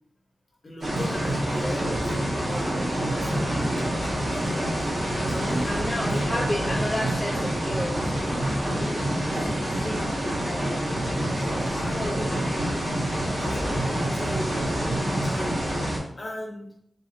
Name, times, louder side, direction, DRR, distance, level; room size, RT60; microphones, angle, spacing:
voice 1, 0.6-2.1 2.4-4.9 5.3-6.4 11.8-12.9 13.4-15.8 16.2-16.7, left 1 dB, 35° left, -1 dB, 0.8 m, -38 dB
sound 1, 0.8-16.0, right 1 dB, 45° right, 1.4 m, -27 dB
voice 2, 5.6-11.0 11.3-12.4, left 1 dB, 10° left, -3 dB, 0.4 m, -34 dB
3.9 x 2.5 x 2.6 m, 0.68 s
wide cardioid pair, 130°, 0 cm